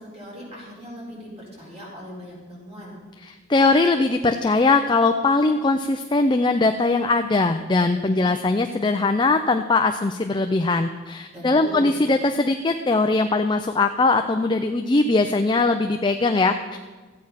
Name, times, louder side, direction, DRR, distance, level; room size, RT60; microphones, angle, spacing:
voice 1, 0.0-3.0 8.1-8.4 11.3-12.0, equal, 30° right, -4 dB, 4.7 m, -39 dB
voice 2, 3.5-16.8, left 3 dB, 25° left, 7 dB, 0.4 m, -20 dB
14.0 x 8.8 x 5.7 m, 1.3 s
head